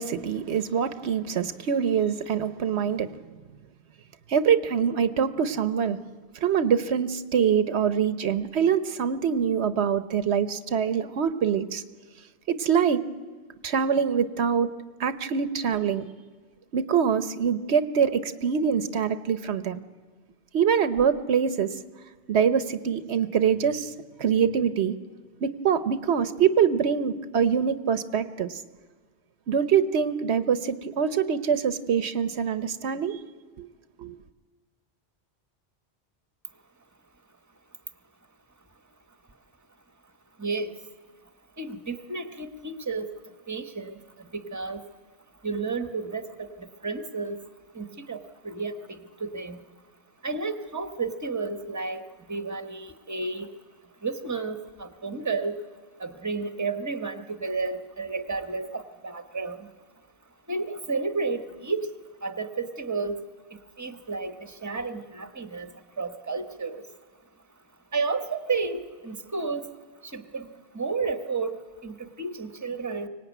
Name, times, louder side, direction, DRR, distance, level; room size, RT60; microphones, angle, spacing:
voice 1, 0.0-3.1 4.3-6.0 6.4-11.8 12.5-13.0 13.6-14.7 15.0-16.0 16.7-19.8 20.5-21.7 22.3-23.9 24.2-24.9 25.4-28.5 29.5-33.2 33.6-33.7 34.0-34.1, right 7 dB, 80° right, 12 dB, 1.1 m, -24 dB
voice 2, 40.4-40.7 41.6-43.1 43.5-43.9 44.3-44.8 45.4-47.4 47.7-48.2 48.4-49.6 50.2-52.0 52.3-53.5 54.0-55.6 56.0-59.6 60.5-61.9 62.2-63.2 63.8-65.7 66.0-66.8 67.9-69.6 70.1-70.5 70.7-71.6 71.8-73.1, right 4 dB, 15° right, 8 dB, 1.2 m, -31 dB
24.0 x 18.5 x 9.2 m, 1.5 s
omnidirectional pair, 1.1 m